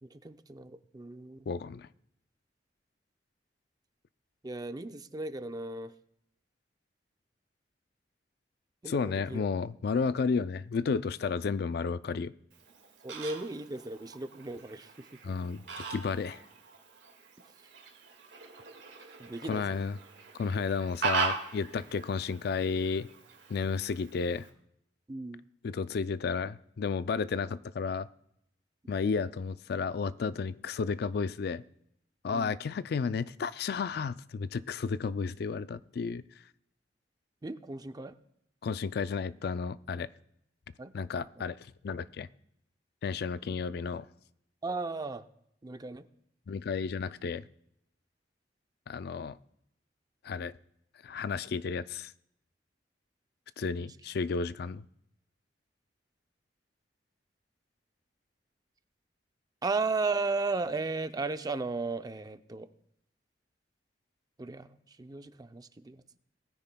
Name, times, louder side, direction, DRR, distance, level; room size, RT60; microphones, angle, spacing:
voice 1, 0.0-1.5 4.4-5.9 8.8-9.5 13.0-15.1 19.2-19.8 25.1-25.4 32.3-32.6 37.4-38.2 40.8-40.9 41.4-41.5 44.6-45.3 45.6-46.0 59.6-62.7 64.4-66.0, right 3 dB, 20° right, 10 dB, 0.5 m, -35 dB
voice 2, 1.5-1.9 8.9-12.3 15.2-16.4 19.5-20.0 20.4-23.1 23.5-24.5 25.6-28.1 28.9-31.6 32.2-36.2 38.6-40.1 40.9-41.6 41.8-42.3 43.0-44.1 46.5-47.4 48.9-49.4 50.2-50.5 51.0-52.1 53.6-54.8, left 5 dB, 60° left, 15 dB, 0.4 m, -32 dB
Fowl, 12.5-24.5, right 4 dB, 85° right, 1.9 m, -40 dB
19.5 x 9.8 x 2.2 m, 0.75 s
head